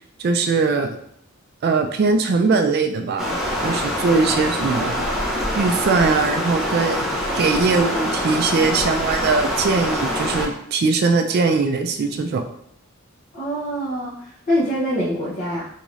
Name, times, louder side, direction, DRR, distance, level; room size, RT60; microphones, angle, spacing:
voice 1, 0.2-1.0 1.6-3.4 3.6-5.1 5.6-7.1 7.4-12.4, right 4 dB, 50° right, 6 dB, 0.3 m, -20 dB
Stream, 3.2-10.5, equal, ahead, 0.6 m, -24 dB
voice 2, 13.3-15.7, equal, 40° left, -8 dB, 0.8 m, -24 dB
3.5 x 2.6 x 3.1 m, 0.70 s
head